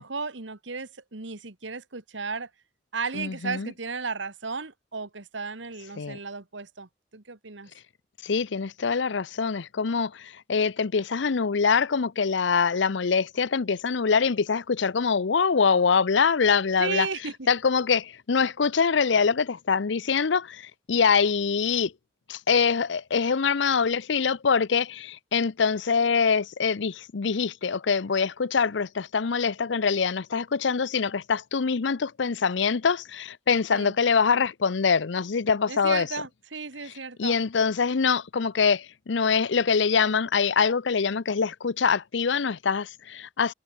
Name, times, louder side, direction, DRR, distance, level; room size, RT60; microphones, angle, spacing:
voice 1, 0.0-2.5 2.9-7.7 16.8-17.5 33.7-34.0 35.7-37.4, right 4 dB, 75° right, 1.7 m, -34 dB
voice 2, 3.2-3.7 6.0-6.2 8.2-17.1 17.5-21.9 22.3-36.1 37.2-43.5, left 5 dB, 75° left, 0.6 m, -24 dB
head